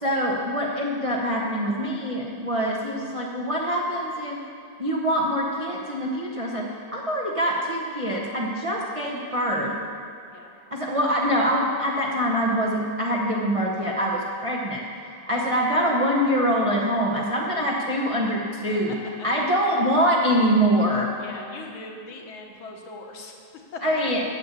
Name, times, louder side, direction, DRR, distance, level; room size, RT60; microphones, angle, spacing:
voice 1, 0.0-4.4 4.8-9.7 10.7-14.8 15.3-19.0 19.2-21.1 23.8-24.2, equal, 45° right, -3 dB, 0.4 m, -24 dB
voice 2, 21.2-24.2, left 3 dB, 75° left, 1 dB, 1.9 m, -40 dB
8.6 x 6.8 x 8.2 m, 2.3 s
omnidirectional pair, 2.3 m